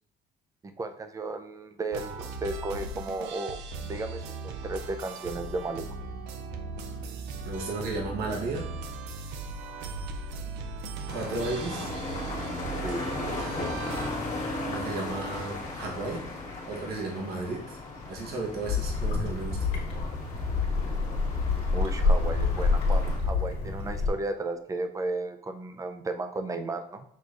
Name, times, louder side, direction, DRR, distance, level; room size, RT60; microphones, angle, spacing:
voice 1, 0.6-5.9 12.8-13.1 21.7-27.0, right 2 dB, 20° right, 8 dB, 0.5 m, -34 dB
sound 1, 1.9-14.1, right 4 dB, 90° right, 0.5 m, -38 dB
voice 2, 7.4-8.7 11.1-11.9 14.6-16.3 16.7-17.8 18.1-19.6, right 2 dB, 65° right, 0 dB, 1.1 m, -34 dB
sound 2, 11.1-23.2, left 2 dB, 45° left, 1.2 m, -37 dB
sound 3, 18.6-24.1, left 3 dB, 80° left, 1.3 m, -27 dB
6.2 x 3.4 x 2.4 m, 0.72 s
cardioid pair, 110°, 17 cm